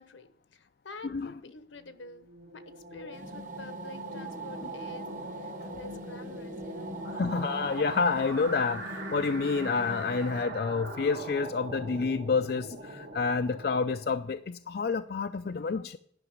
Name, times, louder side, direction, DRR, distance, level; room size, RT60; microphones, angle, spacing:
voice 1, 0.0-2.3 2.5-2.6 2.9-5.1 5.4-7.0, left 3 dB, 90° left, 11 dB, 1.2 m, -48 dB
sound 1, 1.7-14.3, right 2 dB, 80° right, 2.7 m, -41 dB
sound 2, 3.1-10.4, left 2 dB, 45° right, 1.4 m, -45 dB
voice 2, 7.0-16.0, left 4 dB, 55° left, 9 dB, 0.4 m, -29 dB
11.0 x 5.9 x 8.7 m, 0.65 s
head